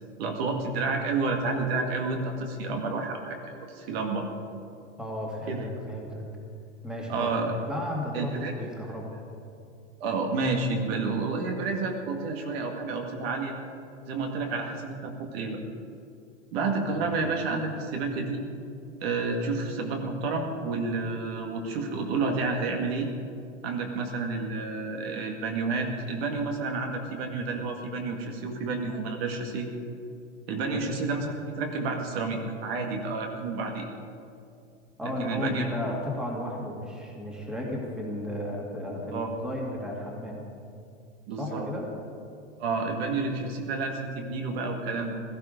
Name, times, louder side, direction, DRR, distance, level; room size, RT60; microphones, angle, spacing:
voice 1, 0.2-4.3 5.5-5.7 7.1-7.5 8.1-8.5 10.0-13.6 14.1-15.6 16.5-18.4 19.0-23.1 23.6-29.7 30.5-33.9 35.0-35.7 39.1-39.3 41.3-41.7 42.6-45.1, right 3 dB, 55° right, 3 dB, 2.0 m, -30 dB
voice 2, 5.0-6.3 6.8-7.3 7.7-9.2 17.0-17.1 30.7-30.8 35.0-40.4 41.4-41.9, left 1 dB, ahead, -1 dB, 2.1 m, -34 dB
16.5 x 13.5 x 5.2 m, 2.5 s
supercardioid pair, 145°, 37 cm